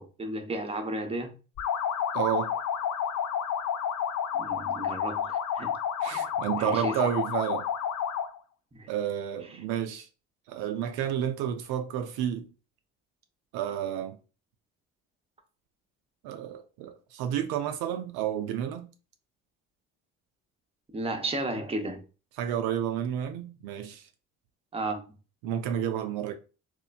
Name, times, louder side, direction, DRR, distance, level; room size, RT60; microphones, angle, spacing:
voice 1, 0.0-1.4 4.3-5.7 6.0-6.3 6.6-7.1 8.7-8.9 9.5-9.6 20.9-22.0 24.7-25.0, right 2 dB, 15° right, 0.7 m, -34 dB
sound 1, 1.6-8.4, left 8 dB, 45° left, 0.4 m, -30 dB
voice 2, 2.1-2.5 6.0-7.7 8.9-10.1 10.5-12.5 13.5-14.2 16.2-18.9 22.4-24.1 25.4-26.3, right 10 dB, 70° right, 0.5 m, -31 dB
3.0 x 2.1 x 2.3 m
hypercardioid pair, 45°, 39 cm